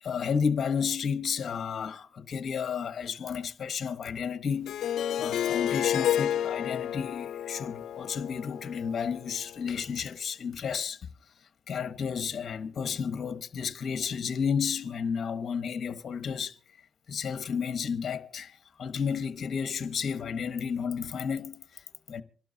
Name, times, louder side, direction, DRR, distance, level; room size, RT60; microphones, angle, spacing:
voice 1, 0.0-11.1 11.7-16.6 17.1-22.2, left 6 dB, 50° left, 1.1 m, -32 dB
Harp, 4.7-9.6, left 10 dB, 75° left, 0.5 m, -31 dB
26.0 x 12.0 x 2.8 m
cardioid pair, 90°, 0 cm